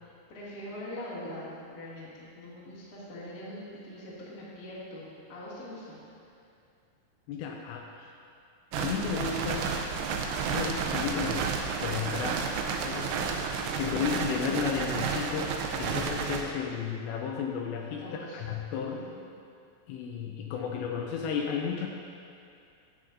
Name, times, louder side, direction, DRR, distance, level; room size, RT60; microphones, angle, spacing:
voice 1, 0.3-6.0 17.9-18.4 18.9-19.2, left 1 dB, 40° left, -10 dB, 1.3 m, -42 dB
voice 2, 7.3-8.1 8.7-9.7 10.5-11.5 11.8-12.4 12.9-13.2 13.7-15.5 15.8-19.1 19.9-21.9, left 7 dB, 85° left, 1 dB, 2.7 m, -33 dB
sound 1, 8.7-16.4, right 5 dB, 85° right, 3.0 m, -31 dB
10.5 x 8.9 x 2.6 m, 2.5 s
omnidirectional pair, 5.3 m